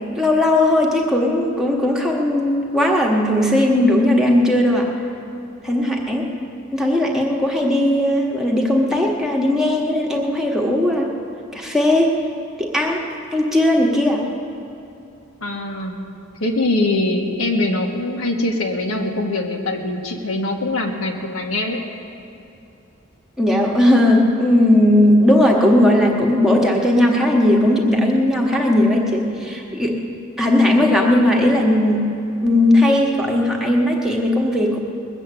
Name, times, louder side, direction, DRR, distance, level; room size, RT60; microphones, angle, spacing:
voice 1, 0.2-4.9 5.6-6.3 6.7-11.1 11.5-12.2 12.6-13.0 13.3-14.2 23.4-30.0 30.4-32.1 32.4-34.8, left 1 dB, ahead, -1 dB, 1.2 m, -17 dB
voice 2, 15.4-16.0 16.4-21.8, left 2 dB, 85° left, 1 dB, 1.6 m, -22 dB
20.5 x 7.5 x 8.3 m, 2.8 s
head